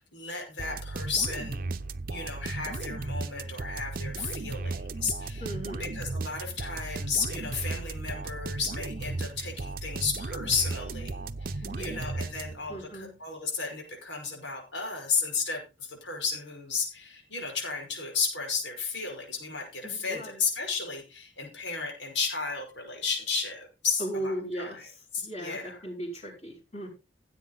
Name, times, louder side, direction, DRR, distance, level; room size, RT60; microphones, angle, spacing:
voice 1, 0.0-1.6 2.1-5.5 5.8-24.8 25.1-25.8, left 5 dB, 80° left, 2 dB, 5.6 m, -33 dB
sound 1, 0.6-12.8, right 3 dB, 50° right, 0.8 m, -35 dB
voice 2, 5.4-5.9 11.6-12.0 12.7-13.1 19.8-20.4 24.0-26.9, right 1 dB, 35° left, -6 dB, 5.5 m, -37 dB
16.0 x 8.3 x 4.0 m, 0.29 s
head